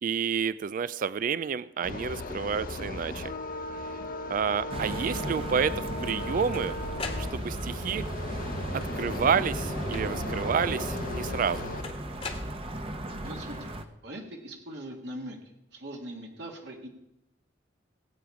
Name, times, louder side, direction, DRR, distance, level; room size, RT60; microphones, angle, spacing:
voice 1, 0.0-3.3 4.3-6.7 7.2-8.0 8.7-11.7, right 6 dB, 45° right, 16 dB, 0.3 m, -29 dB
sound 1, 1.8-11.8, left 2 dB, 50° left, 0.9 m, -37 dB
sound 2, 4.7-13.8, right 1 dB, 30° right, 0.9 m, -36 dB
sound 3, 6.3-7.8 8.7-9.2 9.9-10.5 11.8-13.1, left 3 dB, 30° left, 1.3 m, -40 dB
voice 2, 13.2-13.7 14.0-15.4 15.7-16.9, right 1 dB, 65° right, 1 dB, 1.9 m, -41 dB
18.5 x 8.7 x 4.8 m, 0.86 s
head